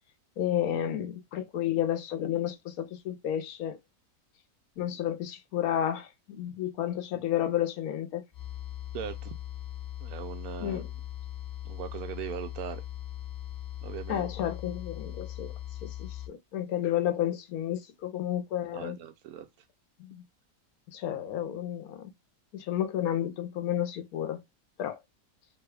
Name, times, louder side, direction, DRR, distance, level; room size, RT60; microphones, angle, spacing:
voice 1, 0.4-3.8 4.8-8.2 10.6-10.8 14.1-15.5 15.8-19.0 20.0-20.2 20.9-22.1 22.5-24.4 24.8-25.0, left 11 dB, 75° left, 1.1 m, -31 dB
sound 1, 8.3-16.3, left 13 dB, 30° left, 0.4 m, -40 dB
voice 2, 8.9-9.3 10.0-11.0 11.6-12.8 13.8-14.3 18.7-19.5, right 10 dB, 80° right, 1.1 m, -39 dB
3.0 x 2.3 x 3.3 m
omnidirectional pair, 1.6 m